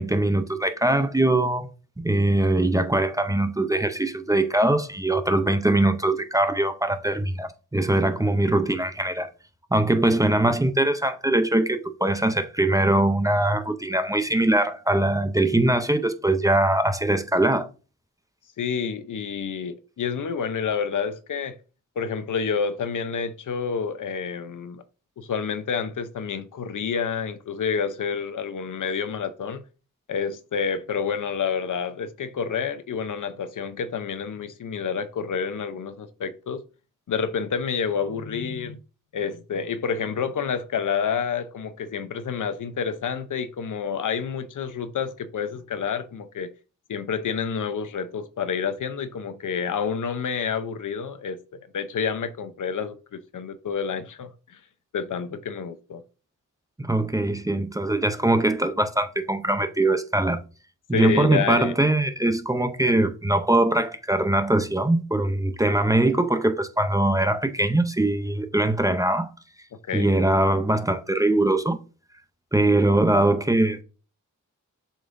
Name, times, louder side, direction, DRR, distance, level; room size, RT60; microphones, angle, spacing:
voice 1, 0.0-1.7 2.0-9.3 9.7-17.7 56.8-60.4 60.9-69.3 69.9-71.8 72.5-73.8, right 1 dB, 10° right, 0.6 m, -22 dB
voice 2, 18.6-21.6 22.0-24.8 25.2-29.6 30.1-36.6 37.1-38.8 39.1-46.5 46.9-54.6 54.9-56.0 60.9-61.7 69.9-70.1, left 6 dB, 70° left, 0.8 m, -29 dB
7.2 x 5.4 x 2.6 m
wide cardioid pair, 125°, 32 cm